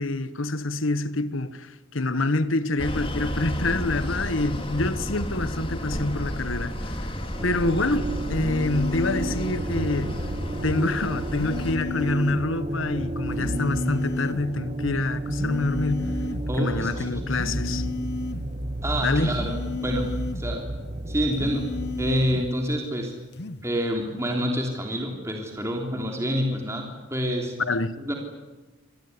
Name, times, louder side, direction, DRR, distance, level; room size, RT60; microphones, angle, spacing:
voice 1, 0.0-7.1 7.4-10.1 10.6-16.2 16.6-17.9 19.0-19.4 27.6-27.9, left 2 dB, 80° left, 1.3 m, -26 dB
sound 1, 2.8-11.7, equal, 25° left, 2.7 m, -32 dB
sound 2, 7.4-22.5, right 1 dB, 35° right, 1.7 m, -31 dB
sound 3, 8.3-9.5 11.4-12.5 13.4-14.5 15.3-16.5 17.3-18.5 19.3-20.5 21.3-22.5 23.3-23.7, left 3 dB, 55° left, 1.0 m, -33 dB
voice 2, 16.5-17.3 18.8-20.7 21.1-21.7 22.0-23.1 23.6-27.5 28.0-28.1, equal, 15° right, 3.4 m, -27 dB
26.5 x 19.0 x 9.9 m
head